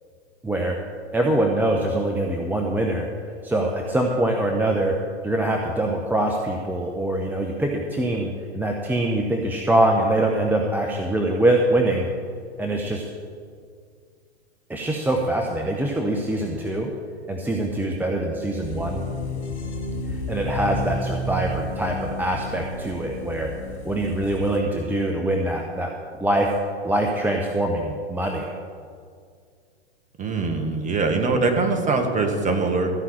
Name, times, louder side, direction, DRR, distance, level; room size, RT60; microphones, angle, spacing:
voice 1, 0.4-0.8 1.1-3.1 3.4-12.1 12.6-13.1 14.7-16.9 17.3-19.0 20.3-23.5 23.8-25.9 26.2-26.5 26.8-28.4, right 1 dB, 5° right, 1 dB, 0.8 m, -23 dB
sound 1, 18.6-24.6, left 2 dB, 75° left, 2.0 m, -31 dB
voice 2, 30.2-32.9, right 3 dB, 20° right, 5 dB, 1.7 m, -22 dB
14.5 x 5.7 x 8.8 m, 2.1 s
hypercardioid pair, 105°, 34 cm